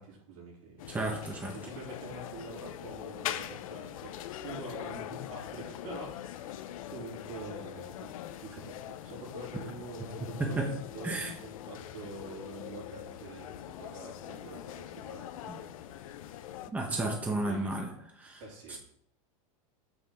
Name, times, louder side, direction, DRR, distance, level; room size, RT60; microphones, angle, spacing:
voice 1, 0.0-1.1 1.5-4.1 4.4-8.1 8.4-16.5 17.0-17.8 18.4-18.8, right 3 dB, 65° right, -2 dB, 3.3 m, -46 dB
sound 1, 0.8-16.7, left 11 dB, 80° left, 0.6 m, -42 dB
voice 2, 0.9-1.5 10.4-10.7 11.0-11.3 15.5-15.6 16.7-17.9 18.2-18.4 18.7-18.8, right 2 dB, 10° right, 1 dB, 1.0 m, -32 dB
6.3 x 6.0 x 3.8 m, 0.67 s
supercardioid pair, 135°, 18 cm